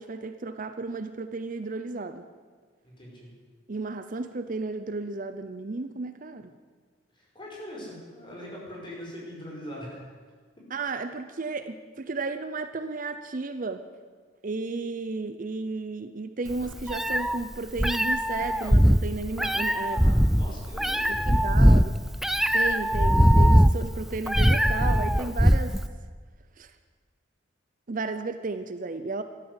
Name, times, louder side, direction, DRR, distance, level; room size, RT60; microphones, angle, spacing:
voice 1, 0.0-2.2 3.7-6.5 10.7-13.9 14.4-20.1 21.3-21.9 22.5-25.8 26.6-26.7 27.9-29.2, right 3 dB, 45° right, 10 dB, 0.6 m, -33 dB
voice 2, 2.8-3.3 7.1-10.1 19.9-21.8, equal, 25° left, -3 dB, 5.2 m, -42 dB
Meow, 16.5-25.9, equal, ahead, 0.4 m, -21 dB
14.0 x 12.5 x 8.2 m, 1.5 s
head